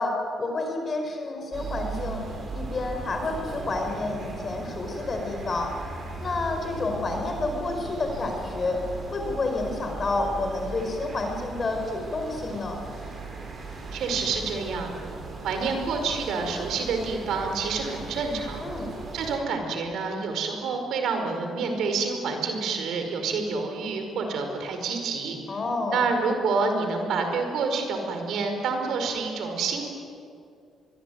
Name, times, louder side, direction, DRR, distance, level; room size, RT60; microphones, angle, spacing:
voice 1, 0.0-2.3 2.5-5.7 6.2-8.8 9.1-12.8 18.6-18.9 25.5-26.1, left 2 dB, 40° left, 3 dB, 5.1 m, -29 dB
sound 1, 1.5-19.4, right 3 dB, 45° right, 7.2 m, -38 dB
voice 2, 13.9-15.1 15.4-18.7 19.1-25.6 25.9-29.9, right 4 dB, 75° right, 5 dB, 5.1 m, -28 dB
25.0 x 22.0 x 9.5 m, 2.4 s
cardioid pair, 90°, 0 cm